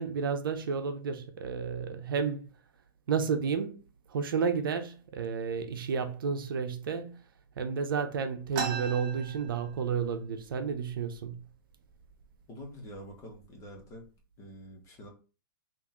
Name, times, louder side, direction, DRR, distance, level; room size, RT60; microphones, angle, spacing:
voice 1, 0.0-2.5 3.1-3.8 4.1-7.2 7.6-11.4, right 6 dB, 80° right, 0.6 m, -31 dB
sound 1, 8.5-10.1 10.5-10.6 10.8-11.5 12.1-12.2 12.9-13.1 13.6-14.0, right 5 dB, 35° right, 0.9 m, -37 dB
voice 2, 12.5-14.0 14.4-15.1, equal, 25° left, 1.1 m, -46 dB
3.6 x 2.6 x 2.9 m
hypercardioid pair, 145°, 11 cm